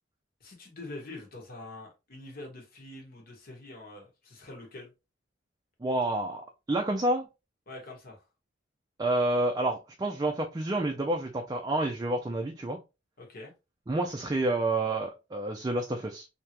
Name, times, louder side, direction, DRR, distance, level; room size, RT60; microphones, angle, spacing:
voice 1, 0.4-4.9 7.7-8.2 13.2-13.5, left 2 dB, 50° left, 1.3 m, -45 dB
voice 2, 5.8-6.4 6.7-7.3 9.0-12.8 13.9-16.3, right 1 dB, 20° right, 0.4 m, -29 dB
3.4 x 2.8 x 2.9 m
head